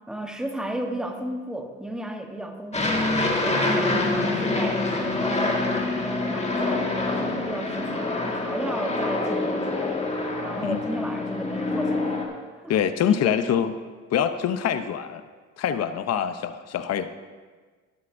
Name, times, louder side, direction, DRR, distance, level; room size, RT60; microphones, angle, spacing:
voice 1, 0.0-3.0 3.4-5.7 6.0-10.0 10.4-12.2 12.6-12.7 13.1-13.4, right 1 dB, ahead, 4 dB, 1.1 m, -34 dB
Aircraft, 2.7-12.2, left 2 dB, 20° left, 1.7 m, -26 dB
voice 2, 12.7-13.7 14.1-15.2 15.6-17.1, left 8 dB, 55° left, 10 dB, 0.6 m, -24 dB
12.5 x 11.5 x 2.6 m, 1.4 s
cardioid pair, 90°, 30 cm